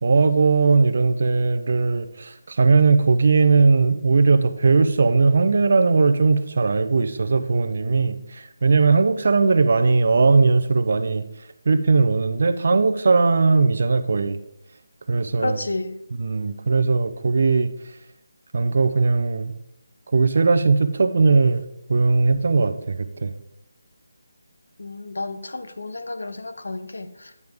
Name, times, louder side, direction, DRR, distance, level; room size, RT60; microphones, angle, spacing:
voice 1, 0.0-11.2 11.7-14.4 15.1-15.6 16.2-17.7 18.5-19.5 20.1-21.6 21.9-23.3, right 4 dB, 55° right, 10 dB, 0.6 m, -19 dB
voice 2, 15.4-16.0 24.8-27.3, left 2 dB, 80° left, 10 dB, 0.8 m, -31 dB
9.5 x 5.2 x 3.5 m, 0.79 s
figure-of-eight pair, 165°, 0 cm